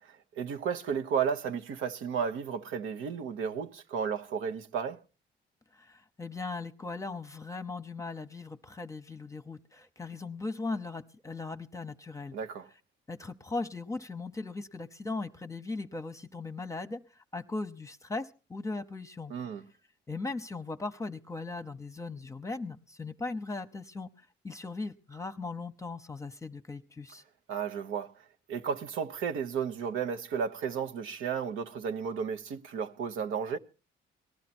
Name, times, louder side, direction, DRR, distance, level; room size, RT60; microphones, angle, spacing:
voice 1, 0.0-5.0 12.3-12.7 19.3-19.6 27.5-33.6, right 7 dB, 85° right, 1.1 m, -33 dB
voice 2, 5.7-12.4 13.1-19.3 20.1-24.1 24.4-27.2, left 3 dB, 15° left, 0.9 m, -38 dB
19.0 x 12.0 x 4.3 m
cardioid pair, 90°, 20 cm